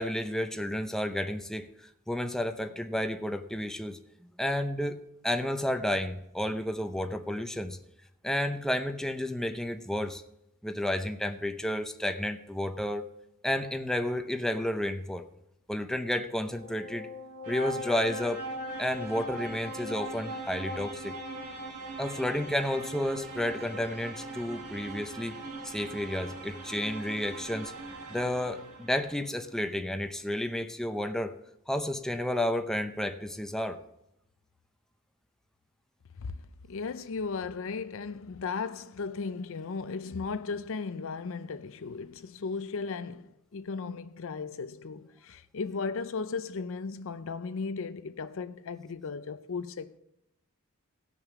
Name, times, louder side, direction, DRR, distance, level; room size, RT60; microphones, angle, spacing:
voice 1, 0.0-1.7 2.1-7.8 8.2-10.2 10.6-13.1 13.4-15.2 15.7-17.1 17.5-18.4 18.8-21.2 22.0-27.7 28.1-31.3 31.7-33.8, left 1 dB, 5° left, 0.6 m, -31 dB
sound 1, 16.3-29.1, right 1 dB, 80° right, 1.8 m, -40 dB
voice 2, 36.7-50.0, left 4 dB, 65° left, 0.5 m, -36 dB
17.0 x 6.4 x 4.8 m
head